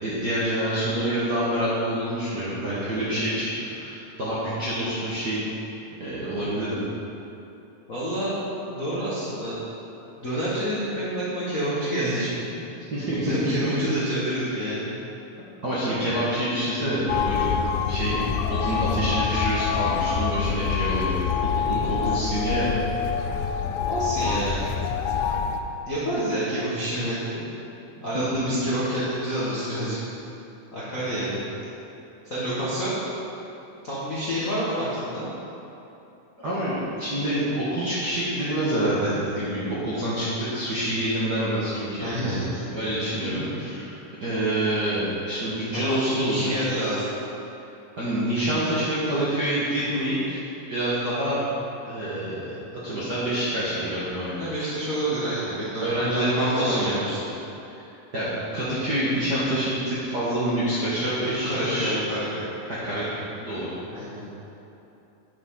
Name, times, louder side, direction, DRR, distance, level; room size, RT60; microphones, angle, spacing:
voice 1, 0.0-3.5 3.8-5.4 6.0-6.8 12.9-13.7 15.6-17.5 17.8-18.2 18.5-22.7 28.1-28.4 36.4-42.4 42.7-43.9 44.2-46.5 48.0-50.4 50.7-51.4 51.8-52.5 52.7-54.5 55.8-56.9 57.7-62.0 62.7-63.7, right 1 dB, 50° right, -10 dB, 1.3 m, -27 dB
voice 2, 7.9-8.3 8.7-9.6 10.2-12.6 13.1-14.9 23.8-24.7 25.9-27.4 28.0-30.0 30.7-31.4 32.3-33.0 33.8-35.2 42.0-42.6 45.7-47.1 54.4-55.8 56.1-57.2 61.2-62.4 63.9-64.3, right 1 dB, 50° left, -10 dB, 1.0 m, -28 dB
sound 1, 17.1-25.6, left 7 dB, 80° left, 1.9 m, -26 dB
9.7 x 7.0 x 3.8 m, 2.9 s
omnidirectional pair, 3.6 m